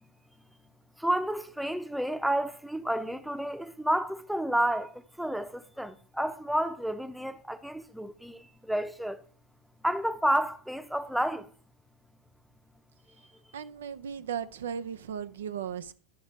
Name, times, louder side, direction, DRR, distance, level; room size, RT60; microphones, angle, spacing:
voice 1, 1.0-4.9 5.2-9.2 9.8-11.5, right 1 dB, ahead, 0.8 m, -30 dB
voice 2, 13.5-15.9, right 8 dB, 80° right, 0.5 m, -36 dB
11.0 x 5.1 x 5.1 m
hypercardioid pair, 90°, 0 cm